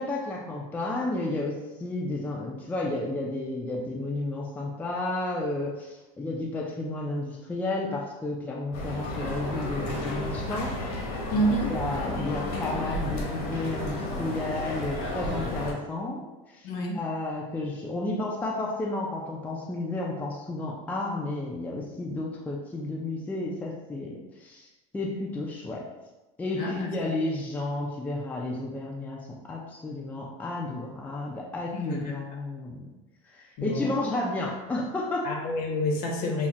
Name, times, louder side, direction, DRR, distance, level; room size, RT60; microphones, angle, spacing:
voice 1, 0.0-10.8 11.3-16.7 16.9-24.7 24.9-25.9 26.4-32.9 33.3-35.3, left 2 dB, 10° left, -2 dB, 0.4 m, -32 dB
sound 1, 8.7-15.7, left 1 dB, 80° left, 1.1 m, -32 dB
voice 2, 11.3-11.7 16.6-17.0 26.6-26.9 31.7-32.1 33.6-34.2 35.2-36.5, equal, 60° left, 1 dB, 0.8 m, -28 dB
5.5 x 2.0 x 2.4 m, 1.1 s
supercardioid pair, 130°, 18 cm